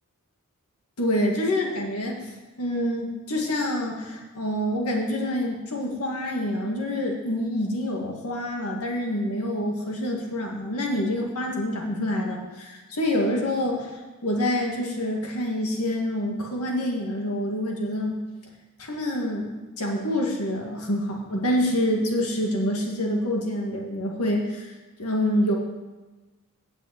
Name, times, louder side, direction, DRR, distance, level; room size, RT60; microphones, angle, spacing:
voice 1, 1.0-2.2 2.6-13.9 14.2-18.2 18.8-24.7 25.0-25.6, left 1 dB, 90° left, 0 dB, 2.0 m, -26 dB
8.3 x 7.2 x 8.2 m, 1.2 s
head